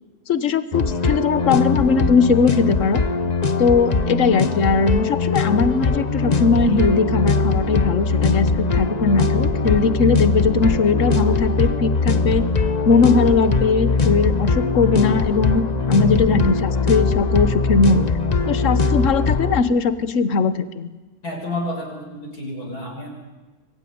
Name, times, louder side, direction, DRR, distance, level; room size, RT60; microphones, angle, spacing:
voice 1, 0.3-3.0 3.6-12.4 12.9-18.1 18.5-20.9, left 4 dB, 50° left, 13 dB, 1.5 m, -19 dB
sound 1, 0.7-19.6, left 4 dB, 30° left, 1.0 m, -21 dB
voice 2, 21.2-23.1, left 1 dB, 70° left, 0 dB, 6.4 m, -30 dB
26.0 x 21.5 x 9.5 m, 1.2 s
omnidirectional pair, 1.7 m